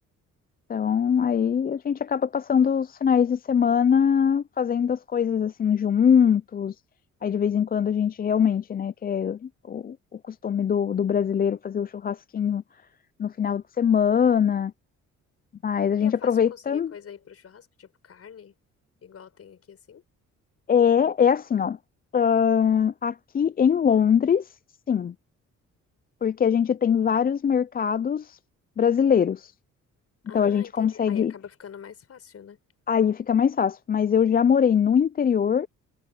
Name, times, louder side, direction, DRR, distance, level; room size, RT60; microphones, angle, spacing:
voice 1, 0.7-6.7 7.2-10.0 10.2-12.6 13.2-14.7 15.6-16.9 20.7-21.8 22.1-24.5 24.9-25.1 26.2-28.4 28.8-29.5 30.3-31.3 32.9-35.7, left 7 dB, 30° left, 0.5 m, -22 dB
voice 2, 16.0-18.5 19.0-20.0 30.3-32.6, left 7 dB, 50° left, 5.9 m, -44 dB
cardioid pair, 90°, 30 cm